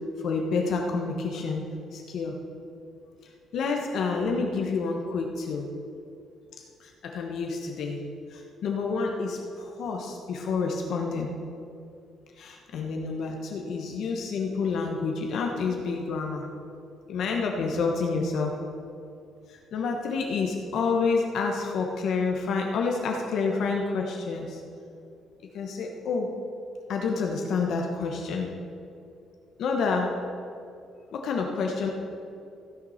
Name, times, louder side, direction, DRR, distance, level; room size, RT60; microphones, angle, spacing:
voice 1, 0.2-1.6 1.9-2.4 3.5-5.7 6.8-8.0 8.3-11.3 12.4-16.5 17.1-18.6 19.5-24.6 25.5-26.3 26.9-28.5 29.6-30.1 31.1-31.9, left 4 dB, 55° left, 1 dB, 1.2 m, -28 dB
15.5 x 7.1 x 5.8 m, 2.5 s
cardioid pair, 155°, 0 cm